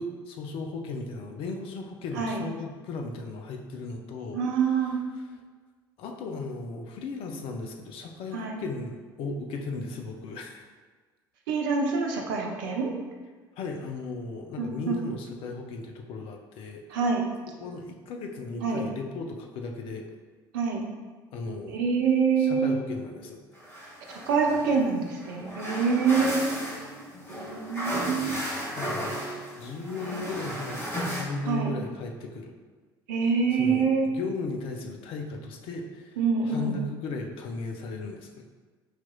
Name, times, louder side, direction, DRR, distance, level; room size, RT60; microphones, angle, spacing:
voice 1, 0.0-4.4 4.7-5.3 6.0-10.7 13.6-16.8 17.6-20.1 21.3-21.8 22.4-23.4 28.8-29.2 29.6-32.5 33.5-38.5, left 3 dB, 50° left, 3 dB, 0.4 m, -36 dB
voice 2, 4.3-5.0 8.3-8.6 11.5-12.9 14.6-15.0 16.9-17.3 18.6-18.8 20.5-20.8 21.7-22.8 24.3-26.5 27.3-28.5 30.0-30.2 31.5-31.7 33.1-34.1 36.2-36.8, right 5 dB, 65° right, 0 dB, 0.6 m, -26 dB
sound 1, 23.6-31.2, equal, 20° left, 1.3 m, -35 dB
5.7 x 2.9 x 2.2 m, 1.4 s
figure-of-eight pair, 60°, 12 cm